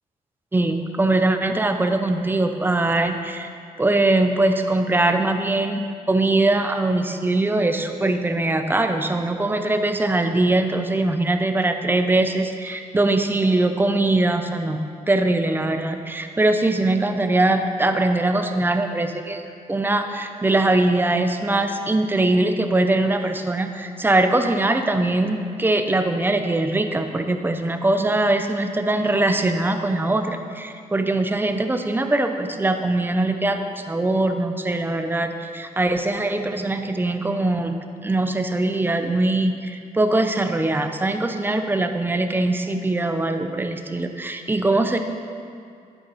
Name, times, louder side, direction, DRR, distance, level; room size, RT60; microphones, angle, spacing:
voice 1, 0.5-3.5 3.8-45.0, right 2 dB, 15° right, 6 dB, 0.7 m, -22 dB
11.0 x 9.4 x 4.2 m, 2.4 s
cardioid pair, 115°, 14 cm